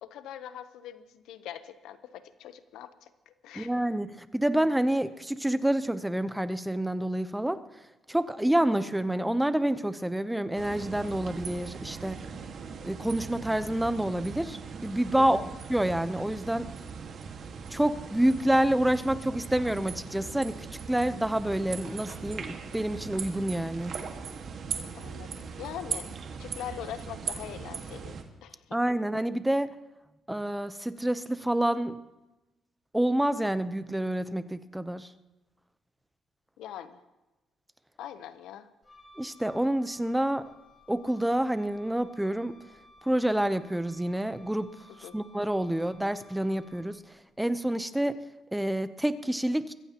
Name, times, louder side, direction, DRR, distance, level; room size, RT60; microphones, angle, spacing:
voice 1, 0.0-3.7 15.2-15.4 24.9-25.3 25.6-26.1 26.4-28.8 36.6-37.0 38.0-38.7 45.0-45.2, left 10 dB, 85° left, 12 dB, 0.8 m, -42 dB
voice 2, 3.5-7.6 8.1-12.2 12.8-15.4 15.7-16.7 17.7-23.9 28.7-29.7 30.3-32.0 32.9-35.1 39.2-40.5 40.9-42.5 43.1-44.7 45.1-47.0 47.4-48.2 48.5-49.7, right 1 dB, 5° right, 12 dB, 0.7 m, -28 dB
sound 1, 10.5-28.2, right 6 dB, 60° right, 1.7 m, -39 dB
Wind instrument woodwind instrument, 38.8-47.1, left 2 dB, 25° left, 5.3 m, -57 dB
23.0 x 15.0 x 3.0 m, 1.0 s
cardioid pair, 90°, 0 cm